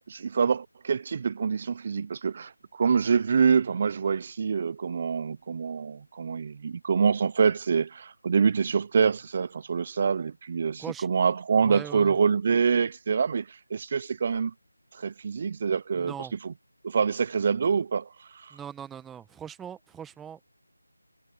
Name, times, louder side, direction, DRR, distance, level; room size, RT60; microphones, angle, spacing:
voice 1, 0.1-14.5 14.9-16.5 16.8-18.6, right 6 dB, 30° right, 0.9 m, -26 dB
voice 2, 11.6-12.2 15.9-16.3 18.5-20.4, right 8 dB, 5° right, 1.7 m, -40 dB
figure-of-eight pair, 165°, 0 cm